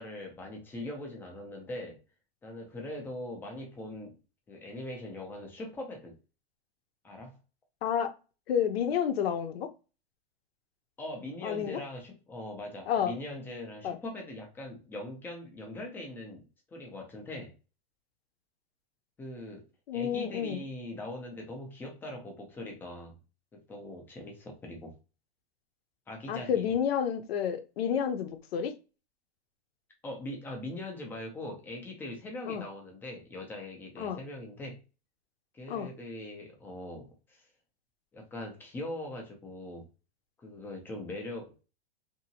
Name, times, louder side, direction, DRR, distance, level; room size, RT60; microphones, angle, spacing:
voice 1, 0.0-2.0 2.4-4.2 4.5-6.2 7.0-7.4 11.0-16.4 16.7-17.5 19.2-19.7 19.9-23.2 23.5-25.0 26.1-26.7 30.0-34.8 35.5-37.5 38.1-39.9 40.4-41.6, left 1 dB, 5° left, 0.4 m, -41 dB
voice 2, 7.8-8.1 8.5-9.7 11.4-11.8 12.9-13.2 13.8-14.0 19.9-20.6 26.3-28.7 32.5-32.6 34.0-34.2 35.7-35.9, left 8 dB, 70° left, 0.7 m, -30 dB
2.8 x 2.6 x 2.7 m
supercardioid pair, 150°, 32 cm